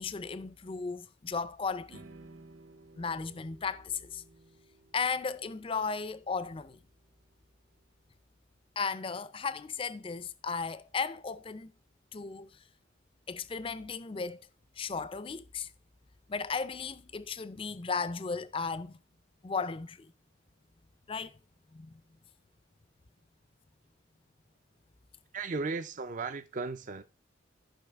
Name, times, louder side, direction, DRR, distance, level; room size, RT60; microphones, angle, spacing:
voice 1, 0.0-2.0 3.0-4.2 4.9-6.8 8.8-11.7 12.1-12.5 13.3-14.5 14.8-15.7 16.3-19.0 19.4-20.1 21.1-21.3 21.7-22.0, left 5 dB, 25° left, 0.4 m, -35 dB
sound 1, 1.9-8.2, right 2 dB, 90° right, 1.3 m, -57 dB
voice 2, 25.3-27.0, right 4 dB, 40° right, 0.5 m, -35 dB
13.5 x 5.7 x 3.5 m
head